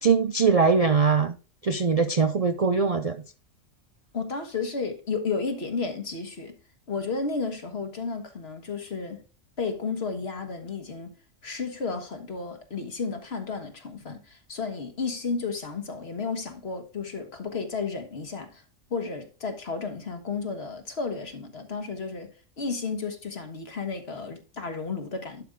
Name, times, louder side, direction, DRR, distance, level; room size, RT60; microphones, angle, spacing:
voice 1, 0.0-1.3 1.6-3.2, right 5 dB, 45° right, 0.5 m, -21 dB
voice 2, 4.1-6.5 6.9-9.2 9.6-11.1 11.4-18.6 18.9-22.3 22.6-25.4, left 4 dB, 55° left, 1.6 m, -32 dB
11.5 x 5.1 x 3.6 m
omnidirectional pair, 1.3 m